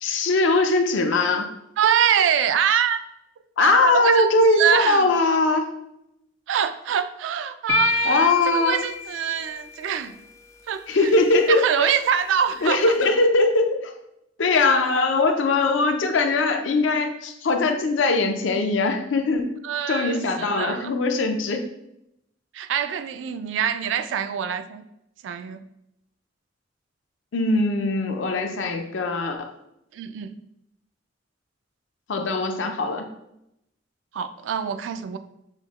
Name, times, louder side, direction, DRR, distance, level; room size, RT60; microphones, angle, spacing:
voice 1, 0.0-1.5 3.6-5.7 8.0-8.8 10.9-11.6 12.6-13.9 14.4-19.5 19.9-21.6 27.3-29.5 32.1-33.1, left 3 dB, 75° left, 5 dB, 0.5 m, -21 dB
voice 2, 1.8-3.0 3.6-4.3 4.6-5.1 6.5-10.1 10.7-11.1 11.5-12.9 19.6-20.9 22.5-24.8 25.2-25.6 29.9-30.4 34.1-35.2, right 8 dB, 75° right, 10 dB, 0.3 m, -24 dB
sound 1, 7.7-9.8, left 6 dB, 15° left, 0.3 m, -27 dB
5.6 x 2.1 x 3.0 m, 0.81 s
head